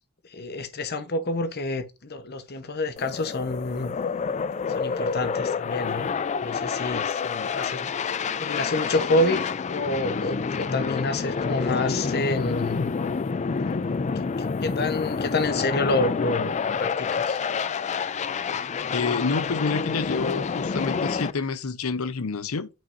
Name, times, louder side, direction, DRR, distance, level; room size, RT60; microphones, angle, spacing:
voice 1, 0.3-3.9 4.7-6.1 6.4-7.9 8.4-12.9 13.6-14.3 14.6-17.4, left 2 dB, 50° left, 1.0 m, -28 dB
sound 1, 3.0-21.3, left 5 dB, 35° left, 0.4 m, -28 dB
voice 2, 18.9-22.7, left 4 dB, 85° left, 0.7 m, -28 dB
9.0 x 5.3 x 2.6 m
head